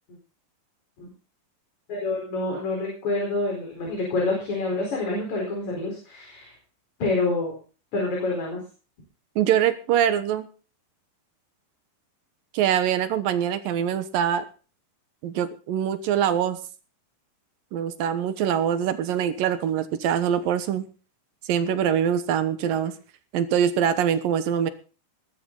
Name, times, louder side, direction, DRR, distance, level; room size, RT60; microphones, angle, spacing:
voice 1, 1.9-6.5 7.0-7.5 7.9-8.6, left 3 dB, 55° left, -1 dB, 5.8 m, -27 dB
voice 2, 9.4-10.5 12.5-14.4 15.2-16.6 17.7-20.8 21.5-22.9 23.3-24.7, right 9 dB, 85° right, 11 dB, 3.0 m, -23 dB
19.5 x 12.0 x 4.0 m, 0.37 s
omnidirectional pair, 3.9 m